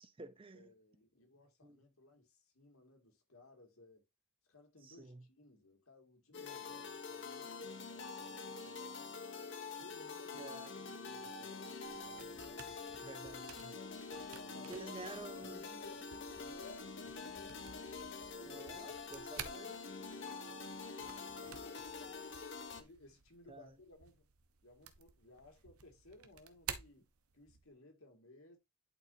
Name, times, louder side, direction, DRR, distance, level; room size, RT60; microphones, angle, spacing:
voice 1, 0.0-0.7 1.6-1.8 4.8-5.2 10.3-10.7 13.0-13.7 14.7-15.6 18.5-19.8 23.5-23.6, right 3 dB, 25° right, 0.6 m, -50 dB
voice 2, 0.5-4.1 4.5-9.2 9.8-12.8 13.6-14.1 14.4-17.7 18.2-18.7 19.1-19.8 20.1-24.3 24.6-28.6, left 2 dB, 70° left, 2.2 m, -61 dB
sound 1, 6.3-22.8, left 4 dB, 55° left, 1.2 m, -46 dB
sound 2, 11.8-27.7, right 8 dB, 80° right, 1.0 m, -53 dB
11.0 x 4.4 x 2.7 m
head